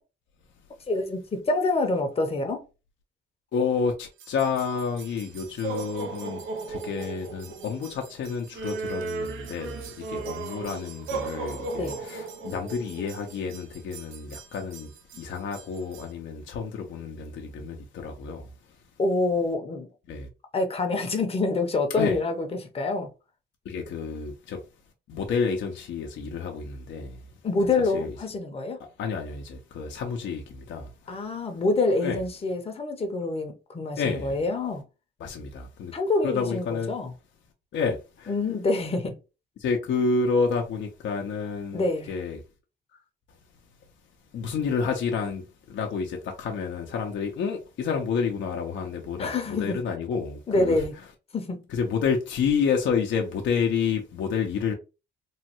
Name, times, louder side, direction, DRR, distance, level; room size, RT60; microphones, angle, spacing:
voice 1, 0.9-2.6 11.8-12.0 19.0-19.9 20.5-23.1 27.4-28.8 31.1-34.8 35.9-37.1 38.3-39.1 41.7-42.1 49.2-49.8 50.5-50.9 51.3-51.6, left 3 dB, 30° left, 0.8 m, -26 dB
voice 2, 3.5-6.4 6.7-18.5 20.1-20.3 22.0-22.2 23.6-24.6 25.1-27.3 27.9-28.1 29.0-31.3 32.0-32.2 34.0-34.4 35.2-36.0 36.2-36.9 37.7-38.3 39.6-42.4 44.3-50.8 51.7-54.7, left 5 dB, 65° left, 0.7 m, -29 dB
sound 1, 4.2-16.1, right 4 dB, 80° right, 0.6 m, -37 dB
3.1 x 2.2 x 2.9 m
cardioid pair, 90°, 20 cm